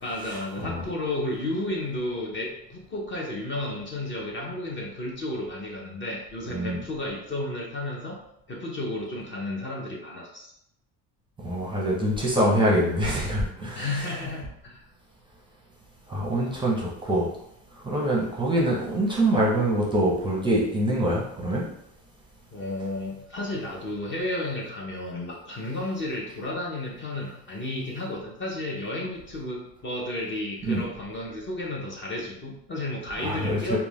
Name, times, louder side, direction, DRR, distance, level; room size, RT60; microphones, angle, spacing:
voice 1, 0.0-8.2 8.5-10.5 13.7-14.8 22.5-33.8, left 1 dB, 30° left, -2 dB, 0.6 m, -32 dB
voice 2, 11.4-14.1 16.1-17.3 17.7-21.7 30.7-30.8 33.2-33.8, right 1 dB, 10° right, -4 dB, 0.6 m, -25 dB
2.4 x 2.2 x 3.3 m, 0.76 s
cardioid pair, 115°, 40 cm